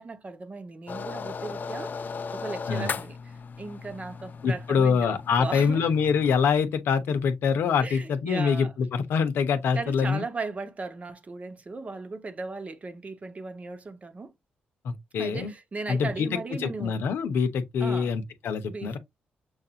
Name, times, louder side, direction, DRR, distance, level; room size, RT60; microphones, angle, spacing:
voice 1, 0.0-5.9 7.8-8.7 9.7-14.3 15.2-17.0 17.8-18.1 18.7-19.0, right 3 dB, 35° right, 1.0 m, -37 dB
sound 1, 0.9-6.5, left 5 dB, 50° left, 0.4 m, -37 dB
voice 2, 4.4-10.2 14.8-15.5 15.9-16.3 16.6-19.0, left 6 dB, 75° left, 0.8 m, -25 dB
6.3 x 2.6 x 2.8 m
supercardioid pair, 60°, 4 cm